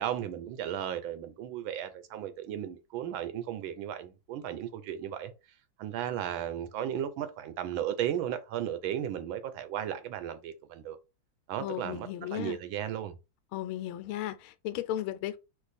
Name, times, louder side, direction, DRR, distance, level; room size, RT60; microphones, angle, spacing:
voice 1, 0.0-5.3 5.8-11.0 11.5-13.1, right 10 dB, 80° right, 1.4 m, -35 dB
voice 2, 11.6-12.6 13.5-15.4, left 13 dB, 85° left, 1.4 m, -35 dB
4.6 x 2.4 x 4.1 m
omnidirectional pair, 2.3 m